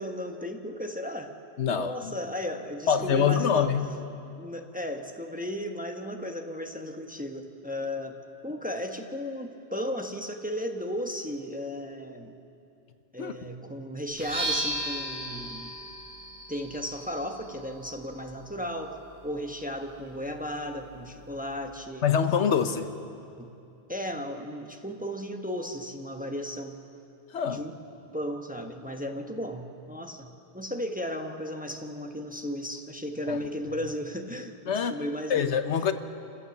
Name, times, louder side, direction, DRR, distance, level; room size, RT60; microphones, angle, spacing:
voice 1, 0.0-1.3 1.7-3.7 4.4-8.2 8.4-12.3 13.1-15.7 16.5-19.0 19.2-22.1 23.4-23.5 23.9-26.8 27.5-27.7 28.1-34.5 34.9-35.5, equal, 10° right, 4 dB, 1.1 m, -35 dB
voice 2, 1.6-2.1 2.9-3.9 13.2-13.3 22.0-22.9 27.3-27.6 33.3-33.4 34.7-35.0 35.3-35.9, left 7 dB, 80° left, 9 dB, 1.2 m, -25 dB
sound 1, 14.1-21.9, right 1 dB, 40° right, 3.7 m, -38 dB
28.0 x 15.5 x 7.2 m, 2.6 s
omnidirectional pair, 1.2 m